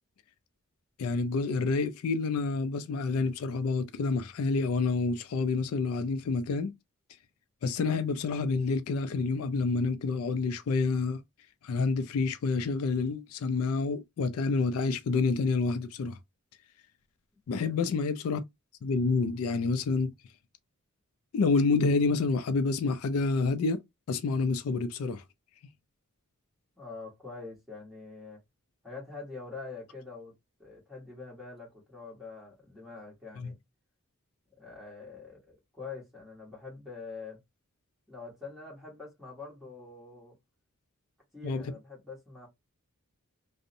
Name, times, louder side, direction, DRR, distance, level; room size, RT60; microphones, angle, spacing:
voice 1, 1.0-6.7 7.6-11.2 11.6-16.2 17.5-18.4 18.8-20.1 21.3-23.8 24.1-25.2 33.4-33.5 41.4-41.7, left 4 dB, 75° left, 0.3 m, -28 dB
voice 2, 17.5-17.8 26.8-28.4 28.8-30.3 30.6-33.6 34.6-37.4 38.1-40.4 41.3-42.5, left 4 dB, ahead, 1.1 m, -45 dB
2.5 x 2.0 x 2.6 m
head